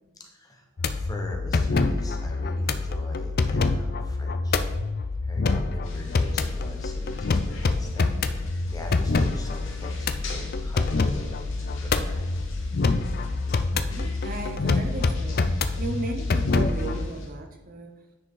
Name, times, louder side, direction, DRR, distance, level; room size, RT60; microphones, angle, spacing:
voice 1, 0.2-4.6 5.2-8.1 8.4-11.4 11.8-12.3, left 1 dB, 15° left, 1 dB, 1.1 m, -42 dB
sound 1, 0.8-17.1, left 3 dB, 45° left, 0.4 m, -26 dB
sound 2, 5.8-17.3, left 2 dB, 65° left, 1.3 m, -43 dB
voice 2, 13.7-15.4 15.8-17.9, right 2 dB, 40° right, 4 dB, 0.7 m, -35 dB
9.7 x 5.1 x 3.9 m, 1.1 s
head